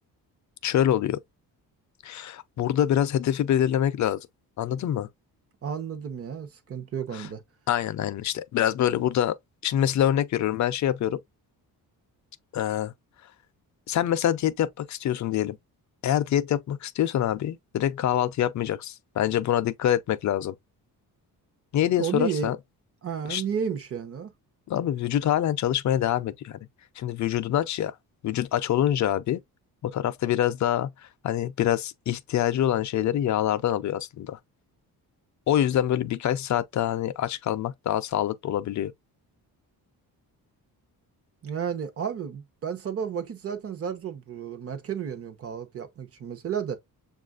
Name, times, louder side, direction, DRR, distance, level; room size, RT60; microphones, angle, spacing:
voice 1, 0.6-1.2 2.0-4.2 4.6-5.1 7.1-7.3 7.7-9.3 9.6-11.2 12.5-12.9 13.9-15.6 16.0-20.5 21.7-22.6 23.3-23.4 24.7-26.6 27.0-27.9 28.2-29.4 29.8-30.9 31.2-34.4 35.5-38.9, left 11 dB, 50° left, 0.5 m, -25 dB
voice 2, 5.6-7.4 22.0-22.5 23.0-24.3 41.4-46.8, right 7 dB, 40° right, 0.8 m, -32 dB
7.0 x 2.4 x 2.4 m
cardioid pair, 140°, 38 cm